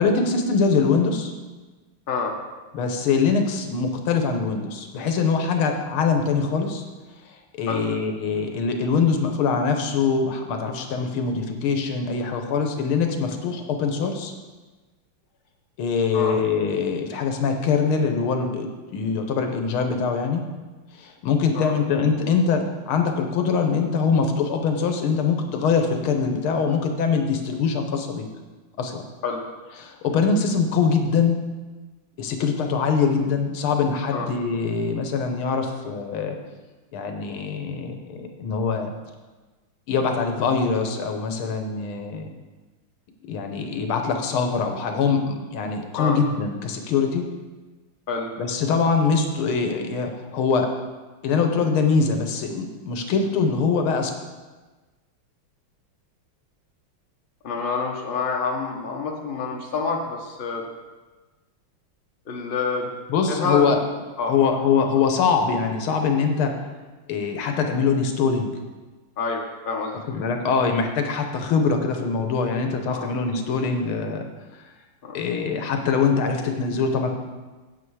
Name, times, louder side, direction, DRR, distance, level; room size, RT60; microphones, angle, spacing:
voice 1, 0.0-1.3 2.7-6.8 7.6-14.3 15.8-20.4 21.0-28.3 28.8-29.1 29.8-31.4 32.2-36.4 36.9-38.9 39.9-42.3 43.3-47.2 48.4-50.7 51.2-54.1 63.1-63.8 64.3-66.5 67.1-68.5 70.1-74.3 75.1-77.1, left 5 dB, 75° left, 5 dB, 1.7 m, -23 dB
voice 2, 57.4-60.6 62.3-62.9 63.3-63.8 64.2-64.3 69.2-70.2 72.9-73.1 75.0-75.2, left 4 dB, 30° left, 0 dB, 1.0 m, -27 dB
8.5 x 8.2 x 4.8 m, 1.3 s
omnidirectional pair, 2.4 m